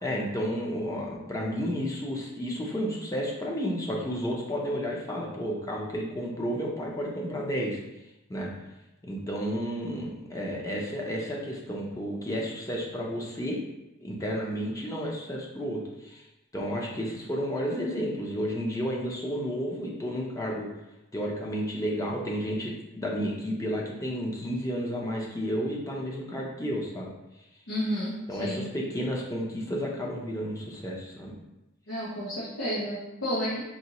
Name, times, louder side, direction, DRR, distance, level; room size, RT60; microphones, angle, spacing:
voice 1, 0.0-7.8 8.3-8.5 9.0-13.6 14.0-16.2 16.5-20.7 21.1-27.1 28.3-31.3, equal, 15° left, -2 dB, 0.7 m, -32 dB
voice 2, 27.7-28.1 28.4-28.7 31.9-33.6, equal, 90° left, -8 dB, 0.9 m, -31 dB
4.1 x 2.9 x 2.9 m, 0.94 s
head